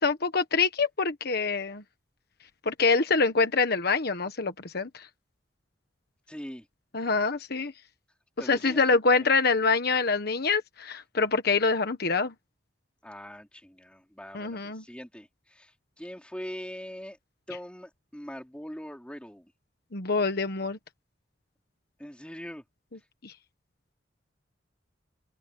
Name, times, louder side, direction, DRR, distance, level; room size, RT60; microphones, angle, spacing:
voice 1, 0.0-1.8 2.6-5.1 6.9-7.7 8.4-12.3 14.3-14.8 19.9-20.8 23.2-23.3, left 4 dB, 60° left, 1.3 m, -25 dB
voice 2, 6.3-6.7 8.4-9.0 13.0-15.7 16.0-17.2 17.5-19.5 22.0-22.6, equal, 5° left, 4.4 m, -42 dB
open air
head